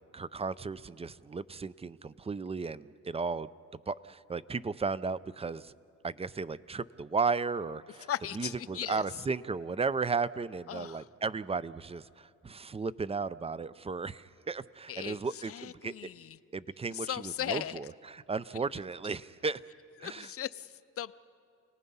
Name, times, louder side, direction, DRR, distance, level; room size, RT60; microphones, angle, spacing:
voice 1, 0.1-3.5 3.9-5.7 6.0-8.1 8.3-16.1 16.5-19.6 20.0-20.3, right 4 dB, 20° right, 17 dB, 0.5 m, -35 dB
voice 2, 7.9-9.0 10.7-11.1 14.9-16.4 16.9-17.8 20.0-21.1, left 11 dB, 50° left, 16 dB, 0.6 m, -38 dB
29.5 x 19.0 x 5.5 m, 2.6 s
cardioid pair, 90°, 30 cm